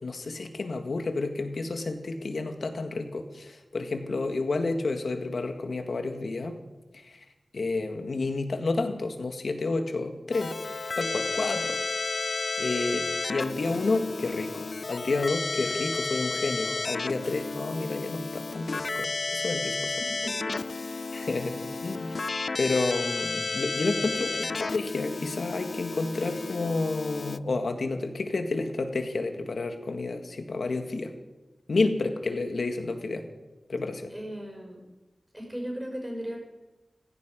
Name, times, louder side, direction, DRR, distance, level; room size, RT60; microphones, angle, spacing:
voice 1, 0.0-6.6 6.9-7.2 7.5-10.5 11.0-11.8 12.3-20.0 21.1-22.2 22.6-31.1 31.7-33.2 33.7-34.1, left 3 dB, 80° left, 6 dB, 1.9 m, -30 dB
Keyboard (musical), 10.3-27.4, left 3 dB, 60° left, 0.4 m, -32 dB
voice 2, 20.0-20.6 34.1-34.8 35.3-36.4, equal, 5° right, -1 dB, 6.0 m, -36 dB
16.0 x 16.0 x 5.3 m, 1.1 s
wide cardioid pair, 90°, 0 cm